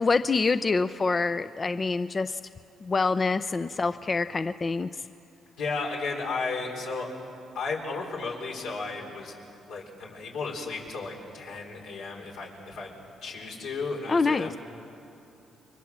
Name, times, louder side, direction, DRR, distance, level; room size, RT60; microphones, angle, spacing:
voice 1, 0.0-2.4 2.8-4.9 14.1-14.5, left 4 dB, 30° left, 11 dB, 0.5 m, -26 dB
voice 2, 5.6-7.1 7.5-9.3 9.7-12.9 13.2-14.6, left 4 dB, 90° left, -1 dB, 4.8 m, -34 dB
30.0 x 23.0 x 7.4 m, 2.8 s
cardioid pair, 90°, 0 cm